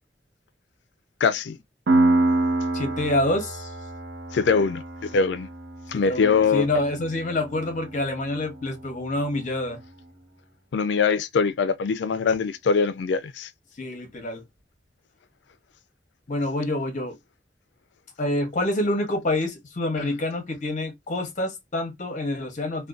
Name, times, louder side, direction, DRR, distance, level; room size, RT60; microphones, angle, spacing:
voice 1, 1.2-1.6 4.3-4.8 5.1-5.5 5.9-6.7 10.7-13.5 20.0-20.1, left 5 dB, 80° left, 0.4 m, -22 dB
Piano, 1.9-9.3, right 2 dB, 75° right, 0.7 m, -27 dB
voice 2, 2.7-3.7 5.9-9.8 13.8-14.4 16.3-17.2 18.2-22.9, left 1 dB, 45° left, 0.8 m, -27 dB
2.5 x 2.2 x 2.3 m
head